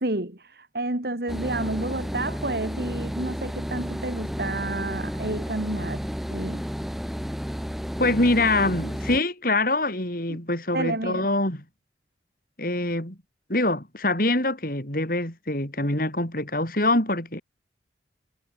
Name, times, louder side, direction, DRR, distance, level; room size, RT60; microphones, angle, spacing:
voice 1, 0.0-6.6 10.3-10.4 10.7-11.3, right 2 dB, 60° right, 2.4 m, -30 dB
sound 1, 1.3-9.2, equal, ahead, 2.4 m, -32 dB
voice 2, 8.0-11.6 12.6-13.2 13.5-17.4, left 2 dB, 50° left, 6.8 m, -24 dB
head